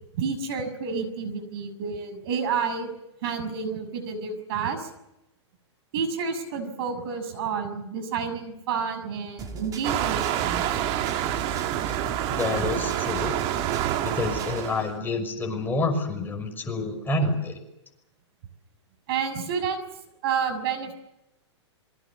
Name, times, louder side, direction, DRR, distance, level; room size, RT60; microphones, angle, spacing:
voice 1, 0.1-2.9 3.2-4.9 5.9-10.7 19.1-19.8 20.2-20.9, right 6 dB, 55° right, 8 dB, 6.6 m, -30 dB
sound 1, 9.4-14.7, right 3 dB, 25° right, 3.3 m, -38 dB
Waves surf, 9.8-14.9, right 12 dB, 40° right, 1.9 m, -27 dB
voice 2, 12.3-13.4 14.0-17.6, left 2 dB, 15° left, 3 dB, 6.1 m, -28 dB
26.0 x 23.5 x 7.4 m, 0.87 s
hypercardioid pair, 125°, 15 cm